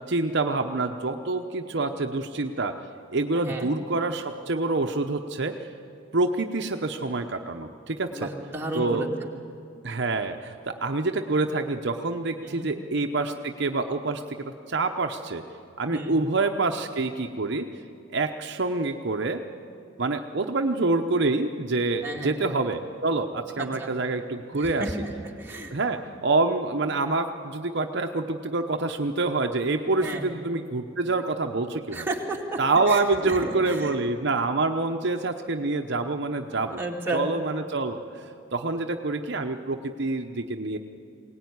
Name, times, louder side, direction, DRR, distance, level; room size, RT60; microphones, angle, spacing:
voice 1, 0.1-2.7 3.1-5.6 6.1-8.3 8.8-9.0 9.8-15.4 15.8-17.7 18.1-19.4 20.0-24.8 25.7-32.1 32.6-36.8 37.1-38.0 38.5-40.8, right 3 dB, 60° right, 5 dB, 0.8 m, -26 dB
voice 2, 3.3-3.7 8.1-9.3 12.4-12.7 15.9-16.2 22.0-22.4 23.6-23.9 24.5-25.7 30.0-30.3 31.9-32.6 32.9-33.9 36.8-37.2, right 2 dB, 10° right, -2 dB, 2.4 m, -33 dB
22.0 x 18.0 x 9.6 m, 2.6 s
head